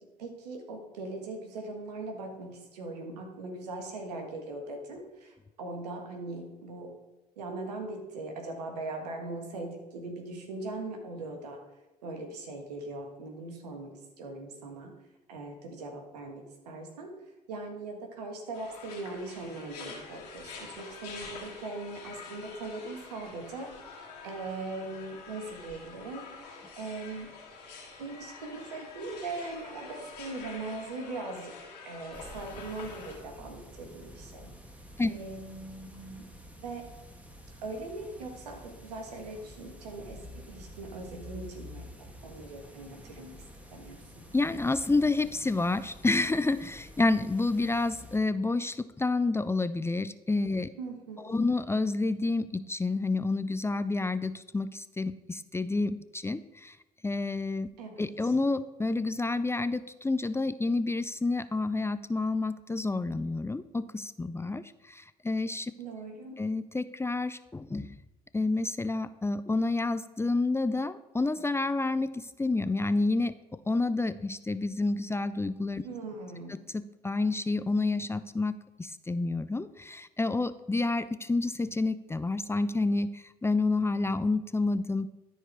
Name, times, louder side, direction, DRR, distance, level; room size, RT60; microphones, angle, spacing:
voice 1, 0.2-6.9 7.4-11.6 12.0-14.9 15.3-17.1 17.5-27.3 28.0-31.5 31.8-34.5 35.0-36.2 36.6-36.8 37.6-41.9 42.2-43.3 43.7-44.2 50.8-51.5 57.8-57.9 65.8-66.4 75.8-76.6, right 2 dB, 85° right, 3 dB, 1.6 m, -40 dB
sound 1, 18.5-33.1, left 4 dB, 85° left, 2.2 m, -47 dB
sound 2, 32.1-48.2, equal, 5° right, 1.7 m, -49 dB
voice 2, 44.3-50.7 51.2-56.8 57.0-57.7 58.0-65.7 66.4-68.0 68.3-73.4 73.7-75.8 76.7-85.1, left 3 dB, 15° left, 13 dB, 0.4 m, -29 dB
13.0 x 4.7 x 4.7 m, 1.1 s
hypercardioid pair, 55°, 20 cm